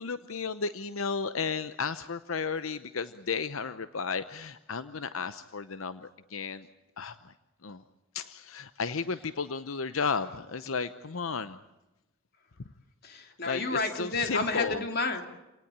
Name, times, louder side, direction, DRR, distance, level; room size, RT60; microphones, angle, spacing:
voice 1, 0.0-6.7 7.0-7.2 7.6-7.8 8.1-11.6 13.4-14.8, left 5 dB, 85° left, 12 dB, 0.8 m, -33 dB
voice 2, 13.0-15.2, left 3 dB, 50° left, 5 dB, 3.2 m, -30 dB
27.5 x 18.5 x 8.7 m, 1.0 s
head